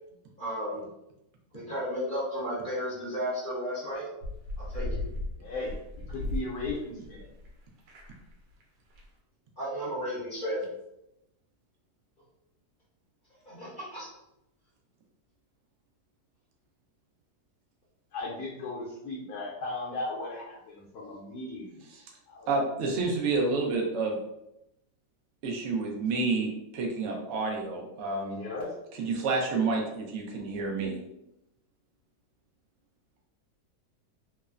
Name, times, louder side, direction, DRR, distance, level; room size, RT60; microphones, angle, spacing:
voice 1, 0.4-0.9 1.5-4.1 4.6-5.0 9.6-10.7 13.4-14.1, equal, 45° left, -9 dB, 0.6 m, -33 dB
sound 1, 4.2-7.5 7.8-8.3 8.6-8.7 8.9-9.0, left 2 dB, 90° right, 1.3 m, -36 dB
voice 2, 5.4-5.8 6.1-7.3 18.1-21.8 22.3-22.5 28.2-28.7, left 2 dB, 70° left, -5 dB, 1.0 m, -36 dB
voice 3, 22.5-24.2 25.4-28.4 28.9-31.0, right 3 dB, 65° right, -1 dB, 0.7 m, -29 dB
3.1 x 2.0 x 2.3 m, 0.85 s
omnidirectional pair, 1.8 m